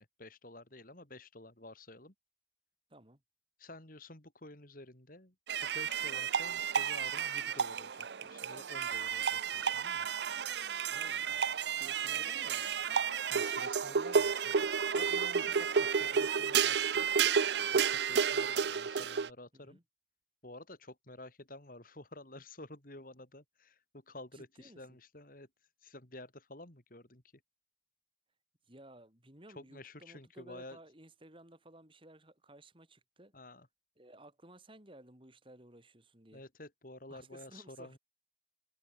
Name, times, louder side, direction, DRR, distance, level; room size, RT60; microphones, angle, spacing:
voice 1, 0.0-2.1 3.6-5.3 5.6-10.1 13.3-17.1 17.6-19.8 20.4-25.5 25.8-27.2 29.5-30.8 33.3-33.7 36.3-38.0, left 2 dB, 50° left, 3.8 m, -51 dB
voice 2, 2.9-3.2 10.9-12.8 15.3-15.5 19.5-19.8 24.3-25.0 28.7-33.3 34.0-36.4 37.1-38.0, right 1 dB, 30° right, 4.6 m, -56 dB
sound 1, 5.5-19.3, right 6 dB, 70° right, 0.6 m, -31 dB
head